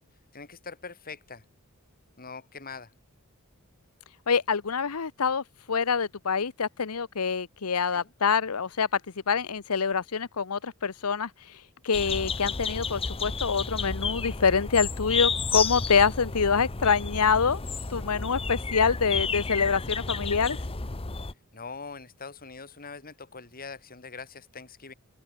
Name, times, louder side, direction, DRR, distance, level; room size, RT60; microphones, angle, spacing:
voice 1, 0.3-1.4 2.2-2.9 7.9-8.1 21.5-24.9, left 4 dB, 40° left, 2.9 m, -43 dB
voice 2, 4.3-9.0 9.3-11.6 11.8-17.6 17.9-20.6, left 5 dB, 80° left, 0.9 m, -26 dB
sound 1, 11.9-21.3, left 5 dB, 25° left, 0.9 m, -31 dB
open air
head